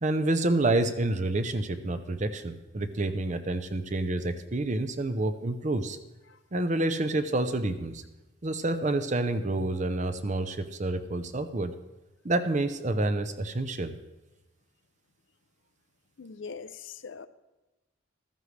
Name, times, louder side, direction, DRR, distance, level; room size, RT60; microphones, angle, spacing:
voice 1, 0.0-6.0 6.5-8.0 8.4-11.7 12.2-13.9, right 2 dB, 35° right, 10 dB, 0.6 m, -28 dB
voice 2, 16.2-17.3, left 5 dB, 60° left, 12 dB, 0.5 m, -42 dB
14.5 x 14.0 x 3.3 m, 1.1 s
head